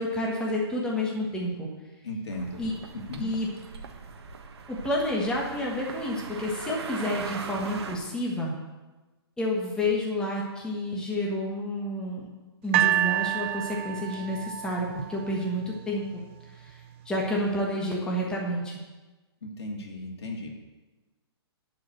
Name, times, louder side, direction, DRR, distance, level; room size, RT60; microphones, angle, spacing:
voice 1, 0.0-1.7 2.6-2.7 3.2-3.5 4.7-8.5 9.4-12.2 12.6-16.2 17.0-18.8, left 1 dB, 5° left, -3 dB, 1.4 m, -29 dB
voice 2, 2.0-2.6 3.1-3.3 19.4-20.5, left 1 dB, 75° left, 1 dB, 2.5 m, -35 dB
Walking to Santiago - Arrival, 2.3-8.0, right 4 dB, 80° right, 1.4 m, -40 dB
sound 1, 12.7-15.9 16.7-16.8, right 13 dB, 30° right, 0.4 m, -28 dB
11.5 x 4.9 x 7.8 m, 1.2 s
hypercardioid pair, 155°, 14 cm